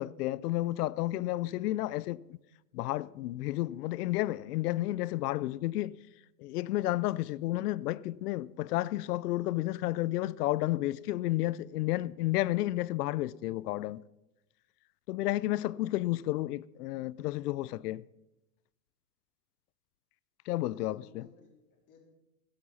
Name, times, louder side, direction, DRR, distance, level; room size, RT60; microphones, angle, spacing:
voice 1, 0.0-2.4 2.7-5.9 6.4-14.0 15.1-18.0 20.5-21.3, left 16 dB, 75° left, 0.6 m, -31 dB
voice 2, 20.5-22.1, left 5 dB, 40° left, 3.8 m, -59 dB
15.5 x 12.0 x 4.1 m
hypercardioid pair, 120°, 47 cm